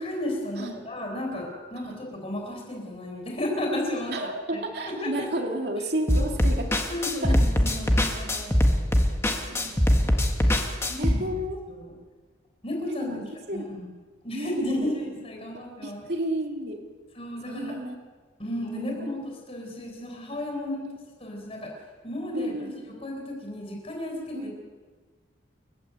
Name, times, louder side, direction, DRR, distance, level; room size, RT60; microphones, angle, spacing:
voice 1, 0.0-4.1 5.0-5.3 6.2-6.3 6.9-8.6 9.3-9.5 10.9-11.2 11.7-11.9 12.6-13.2 13.5-13.9 14.2-16.0 17.1-17.8 18.4-20.8 21.2-21.7 22.0-24.4, left 1 dB, 30° left, 1 dB, 5.9 m, -33 dB
voice 2, 4.1-6.7 7.2-7.4 9.0-9.1 9.5-10.1 11.0-11.6 12.9-13.7 14.3-15.0 15.8-16.9 17.5-18.0 18.8-19.1 20.7-21.0 22.3-22.9 24.3-24.5, right 1 dB, 55° right, 2 dB, 2.7 m, -32 dB
sound 1, 6.1-11.1, left 1 dB, 15° left, 1.6 m, -22 dB
29.0 x 11.5 x 7.9 m, 1.4 s
head